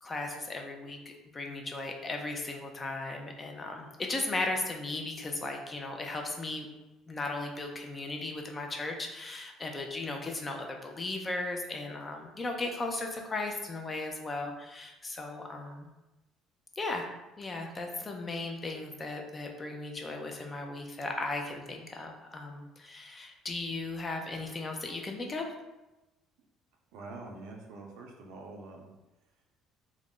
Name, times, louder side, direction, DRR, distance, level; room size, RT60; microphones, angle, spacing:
voice 1, 0.0-6.7 7.1-15.9 16.8-17.1 17.4-25.4, left 2 dB, 20° left, 2 dB, 0.3 m, -36 dB
voice 2, 26.9-28.9, right 3 dB, 80° right, 1 dB, 0.5 m, -45 dB
2.3 x 2.0 x 3.6 m, 1.0 s
cardioid pair, 140°, 0 cm